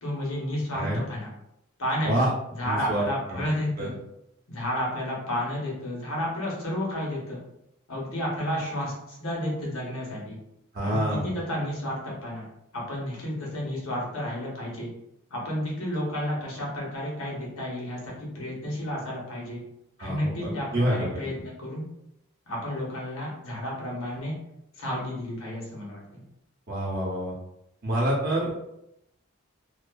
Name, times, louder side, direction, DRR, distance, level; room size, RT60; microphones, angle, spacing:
voice 1, 0.0-1.3 1.8-2.1 2.6-4.0 4.5-7.4 7.9-10.4 10.8-12.5 12.7-14.9 15.3-19.6 20.0-21.8 22.5-24.3 24.8-26.2, left 1 dB, 80° left, -3 dB, 0.9 m, -31 dB
voice 2, 2.6-3.4 3.8-3.9 10.7-11.3 20.0-21.4 26.7-27.3 27.8-28.5, right 1 dB, 45° right, -5 dB, 0.7 m, -27 dB
2.5 x 2.3 x 2.2 m, 0.83 s
head